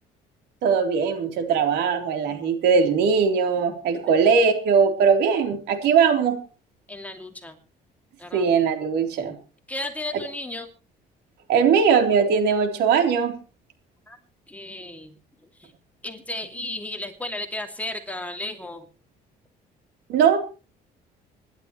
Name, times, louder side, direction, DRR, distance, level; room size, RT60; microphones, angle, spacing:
voice 1, 0.6-6.4 8.3-9.3 11.5-13.4 20.1-20.4, right 6 dB, 80° right, 5 dB, 3.7 m, -20 dB
voice 2, 6.9-7.6 8.2-8.5 9.7-10.7 14.1-14.2 14.5-15.1 15.6-15.7 16.0-18.9, left 2 dB, 10° left, 4 dB, 2.6 m, -34 dB
26.0 x 12.0 x 3.2 m, 0.34 s
cardioid pair, 110°, 17 cm